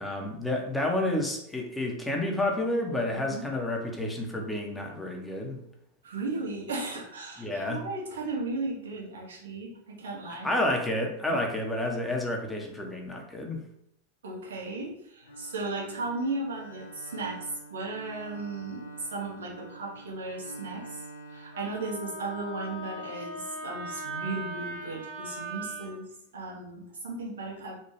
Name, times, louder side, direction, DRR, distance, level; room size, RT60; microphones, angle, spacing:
voice 1, 0.0-5.6 7.4-7.8 10.4-13.6, left 1 dB, 5° left, 1 dB, 0.6 m, -30 dB
voice 2, 6.0-10.5 11.3-11.4 14.2-21.0 21.3-27.8, right 3 dB, 65° right, -3 dB, 0.9 m, -36 dB
Bowed string instrument, 15.2-22.4, right 2 dB, 70° left, 0.4 m, -46 dB
Wind instrument woodwind instrument, 21.5-25.9, right 2 dB, 35° right, 1.4 m, -39 dB
3.0 x 2.1 x 3.0 m, 0.78 s
figure-of-eight pair, 90°, 0 cm